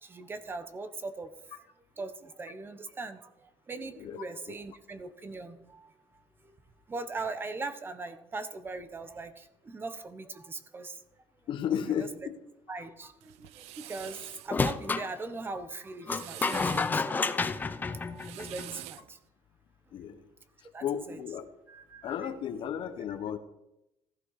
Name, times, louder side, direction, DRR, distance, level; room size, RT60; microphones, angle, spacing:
voice 1, 0.0-1.6 2.0-3.3 3.7-5.9 6.9-11.0 12.0-12.1 12.7-19.2 20.7-21.2 21.7-22.6, right 3 dB, 20° right, 11 dB, 1.1 m, -40 dB
voice 2, 11.5-12.3 19.9-20.2 20.8-21.5 22.0-23.4, left 9 dB, 50° left, 9 dB, 1.3 m, -33 dB
sound 1, 13.2-14.5 15.9-17.0 18.0-19.1, right 16 dB, 80° right, 0.5 m, -45 dB
sound 2, 14.5-15.1 16.1-18.8, left 4 dB, 15° left, 0.6 m, -30 dB
15.5 x 15.0 x 4.9 m, 0.87 s
cardioid pair, 155°, 11 cm